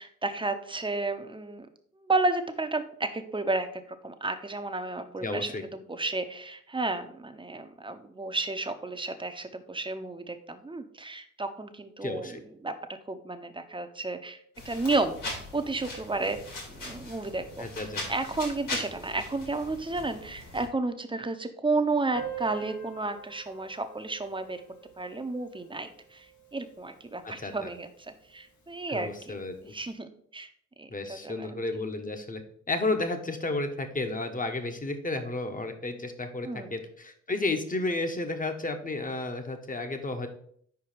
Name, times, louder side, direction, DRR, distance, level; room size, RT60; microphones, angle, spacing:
voice 1, 0.0-1.7 2.0-12.7 13.1-15.2 15.5-16.4 16.7-17.6 18.1-24.6 25.0-29.4 29.6-30.5 30.8-31.6 36.4-36.8, right 3 dB, 15° right, 8 dB, 0.8 m, -32 dB
voice 2, 5.2-5.6 12.0-12.4 17.6-18.1 27.2-27.7 28.9-29.5 30.9-32.4 32.7-40.3, left 2 dB, 25° left, 7 dB, 1.1 m, -32 dB
sound 1, 14.5-20.7, left 2 dB, 85° left, 2.8 m, -40 dB
Piano, 22.1-27.5 27.8-27.9 28.1-28.2 28.6-28.7 29.4-29.6, right 8 dB, 65° left, 1.3 m, -44 dB
4.9 x 4.7 x 5.0 m, 0.63 s
cardioid pair, 60°, 31 cm